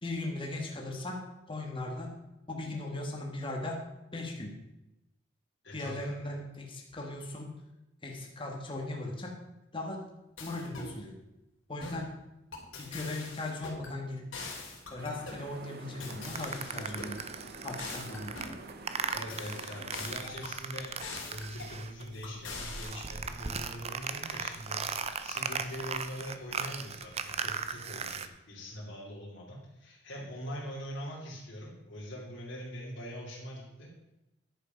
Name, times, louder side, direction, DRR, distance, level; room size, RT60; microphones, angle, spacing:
voice 1, 0.0-1.2 1.5-2.1 2.5-3.8 4.1-4.6 5.7-7.5 8.0-9.3 9.7-10.0 10.4-11.1 11.7-12.1 12.8-14.3 14.9-17.2 17.6-18.3, left 2 dB, 25° left, 0 dB, 1.6 m, -38 dB
voice 2, 5.6-6.1 19.1-21.0 21.3-33.9, equal, 60° left, -7 dB, 2.8 m, -42 dB
sound 1, 10.4-10.9 11.8-12.1 12.5-13.9 14.3-15.4 16.0-17.3 17.8-18.6 19.1-20.6 21.0-21.8 22.2-22.9, left 3 dB, 75° left, 2.8 m, -43 dB
sound 2, 15.0-20.2, right 2 dB, 55° right, 1.1 m, -48 dB
sound 3, 16.1-22.1 22.4-28.3, right 5 dB, 35° right, 0.6 m, -38 dB
10.5 x 8.3 x 5.2 m, 0.93 s
head